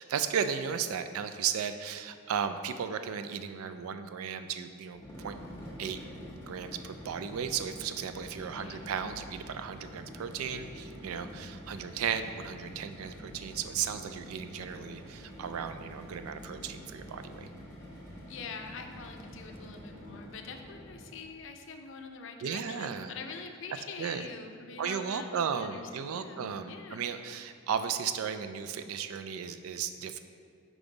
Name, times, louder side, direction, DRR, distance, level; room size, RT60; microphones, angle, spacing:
voice 1, 0.0-5.4 5.8-6.0 6.5-17.5 22.4-23.1 24.0-24.3 24.8-30.2, right 7 dB, 75° right, 10 dB, 0.3 m, -35 dB
sound 1, 4.9-21.3, equal, 10° left, 1.2 m, -47 dB
voice 2, 18.3-27.0, left 5 dB, 55° left, 5 dB, 0.5 m, -44 dB
5.3 x 4.8 x 3.8 m, 2.2 s
head